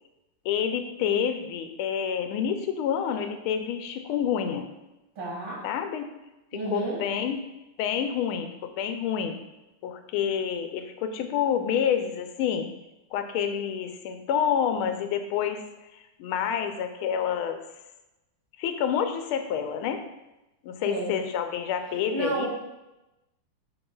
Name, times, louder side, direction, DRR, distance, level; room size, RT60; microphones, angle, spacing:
voice 1, 0.4-4.7 5.6-6.1 6.5-7.4 7.8-9.4 9.8-12.7 13.1-15.6 15.9-17.6 18.6-20.0 20.6-22.5, left 8 dB, 80° left, 7 dB, 1.5 m, -28 dB
voice 2, 5.2-5.6 6.5-7.0 20.9-21.2 22.1-22.5, right 2 dB, 70° right, -5 dB, 2.9 m, -30 dB
7.8 x 5.9 x 2.3 m, 0.98 s
omnidirectional pair, 2.3 m